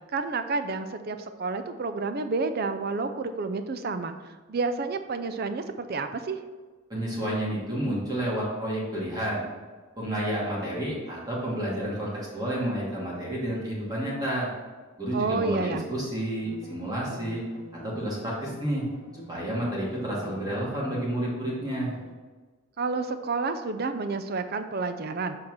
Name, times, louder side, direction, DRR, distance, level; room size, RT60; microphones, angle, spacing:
voice 1, 0.1-6.4 15.1-15.9 22.8-25.4, right 4 dB, 50° right, 9 dB, 0.5 m, -30 dB
voice 2, 6.9-9.4 10.0-14.5 15.0-17.4 17.8-18.8 19.3-21.9, right 1 dB, 20° right, -6 dB, 2.5 m, -30 dB
sound 1, 16.4-22.1, equal, 35° left, 1.7 m, -47 dB
7.2 x 4.6 x 6.2 m, 1.3 s
head